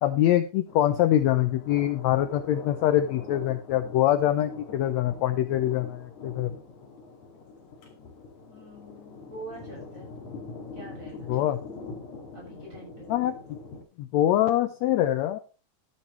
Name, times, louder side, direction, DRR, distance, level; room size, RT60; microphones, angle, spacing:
voice 1, 0.0-6.5 11.3-11.6 13.1-13.3 14.0-15.4, left 12 dB, 80° left, 11 dB, 1.6 m, -24 dB
Thunder, 0.7-13.8, left 4 dB, 60° left, 3.7 m, -44 dB
voice 2, 8.5-10.1 10.7-11.4 12.3-13.1, right 2 dB, 20° right, -2 dB, 7.4 m, -45 dB
13.0 x 10.0 x 3.1 m, 0.34 s
omnidirectional pair, 3.8 m